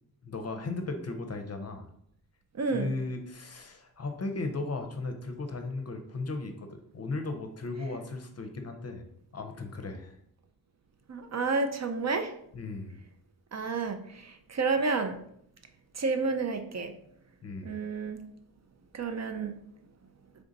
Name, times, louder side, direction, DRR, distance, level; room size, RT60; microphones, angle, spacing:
voice 1, 0.2-1.9 2.7-6.7 6.9-9.0 9.3-10.1 12.5-13.0 17.4-17.8, left 3 dB, 45° left, 5 dB, 0.6 m, -36 dB
voice 2, 2.6-2.9 11.1-12.3 13.5-15.2 15.9-16.9 17.6-18.2 18.9-19.6, right 4 dB, 45° right, 7 dB, 0.5 m, -30 dB
3.8 x 3.4 x 3.9 m, 0.70 s
wide cardioid pair, 145°, 37 cm